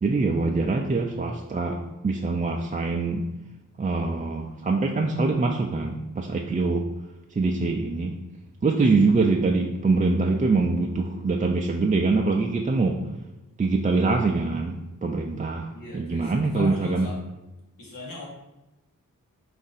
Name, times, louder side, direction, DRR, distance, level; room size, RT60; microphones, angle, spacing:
voice 1, 0.0-3.3 3.8-6.9 7.3-8.2 8.6-13.0 13.6-17.1, right 3 dB, 25° right, 0 dB, 0.3 m, -24 dB
voice 2, 15.7-17.2 17.8-18.3, left 2 dB, 85° left, -4 dB, 1.3 m, -40 dB
4.8 x 2.6 x 4.0 m, 1.0 s
wide cardioid pair, 75°, 33 cm